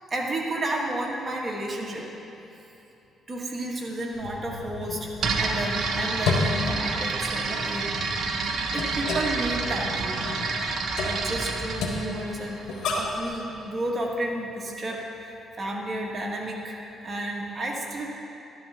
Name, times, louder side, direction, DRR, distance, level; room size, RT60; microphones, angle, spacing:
voice 1, 0.1-2.1 3.3-8.1 8.7-10.2 11.0-18.1, right 1 dB, 35° right, -1 dB, 1.9 m, -32 dB
sound 1, 4.1-13.3, left 3 dB, 80° left, 1.4 m, -33 dB
sound 2, 5.2-13.0, right 4 dB, 65° right, 1.1 m, -29 dB
12.5 x 11.5 x 3.8 m, 3.0 s
cardioid pair, 90°, 0 cm